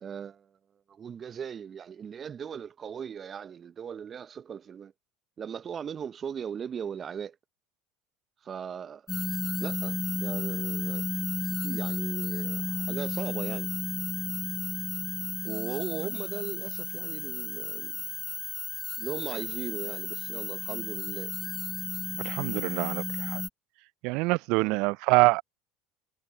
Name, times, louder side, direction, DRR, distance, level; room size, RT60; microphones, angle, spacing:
voice 1, 0.0-0.5 0.9-4.9 5.4-7.3 8.4-9.0 9.6-11.1 11.6-13.7 15.4-18.0 19.0-21.3 24.6-24.8, right 7 dB, 35° right, 0.8 m, -38 dB
sound 1, 9.1-23.5, left 3 dB, 15° left, 1.3 m, -33 dB
voice 2, 22.2-23.4 24.0-25.4, right 25 dB, 65° right, 0.4 m, -25 dB
hypercardioid pair, 70°, 0 cm